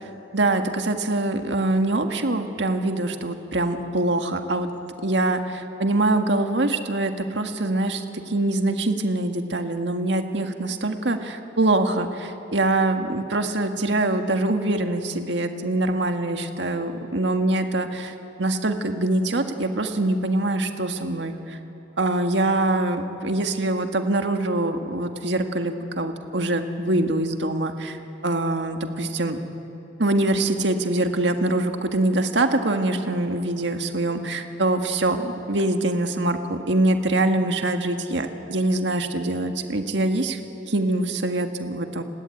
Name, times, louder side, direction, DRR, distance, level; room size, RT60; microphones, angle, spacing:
voice 1, 0.3-4.7 5.0-21.6 22.0-28.0 28.2-29.4 30.0-40.4 40.7-42.0, right 2 dB, 75° right, 6 dB, 1.8 m, -24 dB
30.0 x 18.5 x 9.2 m, 2.9 s
head